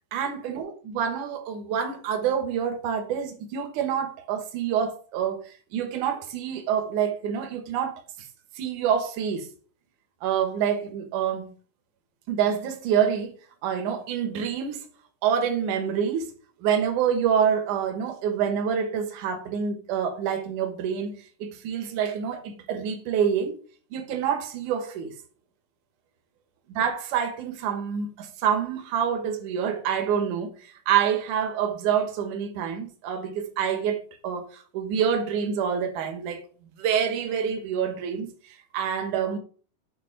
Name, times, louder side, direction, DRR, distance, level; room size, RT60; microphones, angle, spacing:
voice 1, 0.1-8.0 8.6-9.5 10.2-11.5 12.3-13.3 13.6-14.9 15.2-16.3 16.6-23.6 23.9-25.1 26.7-36.4 36.8-39.4, right 8 dB, 70° right, 2.5 m, -27 dB
9.1 x 4.1 x 5.7 m
omnidirectional pair, 3.9 m